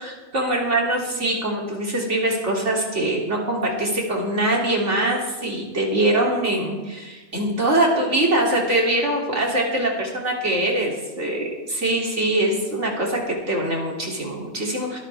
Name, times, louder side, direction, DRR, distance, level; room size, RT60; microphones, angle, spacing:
voice 1, 0.0-15.0, right 1 dB, 80° right, -2 dB, 3.3 m, -23 dB
24.0 x 13.5 x 3.5 m, 1.2 s
omnidirectional pair, 1.2 m